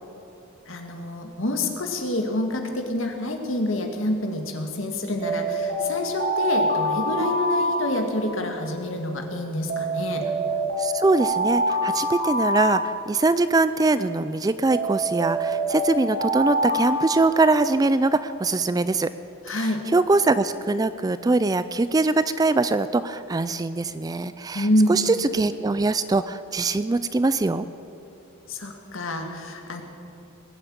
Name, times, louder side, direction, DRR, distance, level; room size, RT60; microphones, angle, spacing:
voice 1, 0.7-10.2 19.4-19.8 24.5-25.0 28.5-29.8, left 1 dB, 65° left, 4 dB, 1.9 m, -27 dB
Alarm, 5.2-8.5 9.7-13.5 14.7-18.0, right 1 dB, 45° right, 2.6 m, -26 dB
voice 2, 10.8-19.1 19.5-27.7, right 3 dB, 15° right, 13 dB, 0.3 m, -22 dB
20.5 x 8.0 x 8.6 m, 2.7 s
head